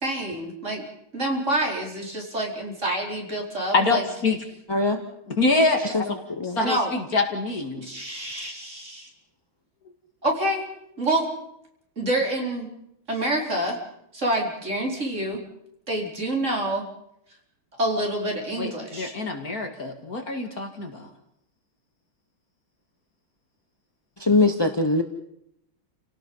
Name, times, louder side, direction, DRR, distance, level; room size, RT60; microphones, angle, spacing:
voice 1, 0.0-0.8 1.1-4.0 6.5-6.9 7.8-9.1 10.2-10.7 11.0-11.3 12.0-12.7 13.1-13.8 14.1-15.4 15.9-16.8 17.8-19.1, right 1 dB, 35° right, 0 dB, 4.8 m, -27 dB
voice 2, 3.7-4.4 5.4-6.2 6.6-7.9 18.6-21.1, left 3 dB, 45° left, 4 dB, 2.6 m, -25 dB
voice 3, 4.7-5.0 5.8-6.0 6.4-6.6 24.2-25.0, left 2 dB, 20° left, 6 dB, 0.7 m, -21 dB
29.5 x 18.0 x 5.6 m, 0.77 s
omnidirectional pair, 2.3 m